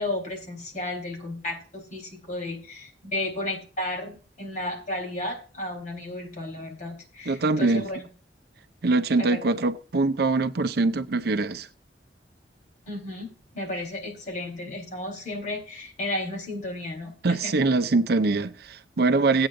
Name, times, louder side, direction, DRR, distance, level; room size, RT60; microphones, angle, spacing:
voice 1, 0.0-8.0 9.2-9.4 12.9-17.5, left 1 dB, 45° left, 4.0 m, -33 dB
voice 2, 7.3-7.8 8.8-11.7 17.2-19.5, right 3 dB, 60° right, 0.6 m, -23 dB
17.0 x 8.8 x 2.6 m
head